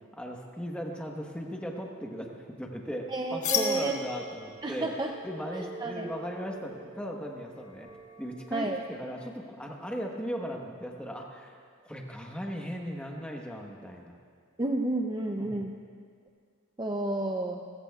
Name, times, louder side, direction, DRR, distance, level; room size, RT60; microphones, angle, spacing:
voice 1, 0.2-2.3 2.6-4.9 5.2-7.9 8.2-11.5 11.8-14.2 15.4-15.6, equal, 5° left, 0 dB, 1.1 m, -37 dB
voice 2, 3.1-4.0 4.6-5.1 5.5-6.1 8.5-8.8 14.6-15.7 16.8-17.6, right 2 dB, 20° right, 2 dB, 0.5 m, -31 dB
sound 1, 3.4-9.0, left 6 dB, 90° left, 1.8 m, -38 dB
29.0 x 15.0 x 2.4 m, 2.1 s
head